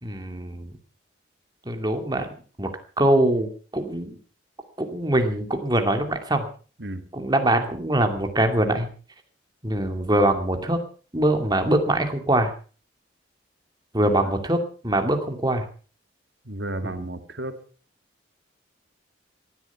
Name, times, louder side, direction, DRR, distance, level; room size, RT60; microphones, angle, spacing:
voice 1, 0.0-0.7 1.7-2.3 2.6-2.7 3.0-4.2 4.8-6.5 7.1-8.9 9.6-10.8 11.1-12.5 13.9-15.7 16.8-17.0, right 1 dB, 20° right, 5 dB, 2.5 m, -23 dB
voice 2, 14.0-14.3 16.5-17.6, right 1 dB, 65° right, 8 dB, 2.2 m, -33 dB
18.5 x 13.0 x 5.8 m, 0.40 s
head